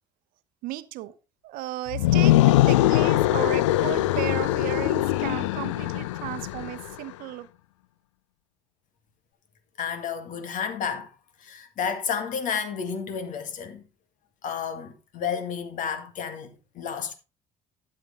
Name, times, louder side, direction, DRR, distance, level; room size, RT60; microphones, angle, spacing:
voice 1, 0.6-1.1 1.4-7.5, right 15 dB, 70° right, 0.8 m, -35 dB
sound 1, 1.9-6.9, left 15 dB, 90° left, 0.4 m, -22 dB
voice 2, 9.8-11.1 11.4-13.8 14.4-17.1, left 7 dB, 60° left, 1.9 m, -31 dB
12.0 x 7.6 x 3.6 m
hypercardioid pair, 65°, 15 cm